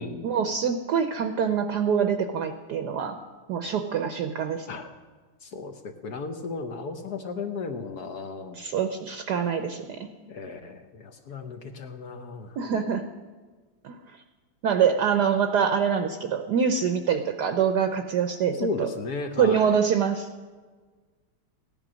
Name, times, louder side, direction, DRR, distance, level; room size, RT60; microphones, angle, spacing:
voice 1, 0.2-3.2 3.5-4.7 8.6-10.1 12.6-13.1 13.8-14.0 14.6-18.9 19.4-20.3, right 7 dB, 65° right, 7 dB, 1.1 m, -25 dB
voice 2, 5.4-8.6 10.3-12.6 18.6-19.8, left 4 dB, 60° left, 6 dB, 1.2 m, -35 dB
16.0 x 10.5 x 6.2 m, 1.5 s
omnidirectional pair, 2.3 m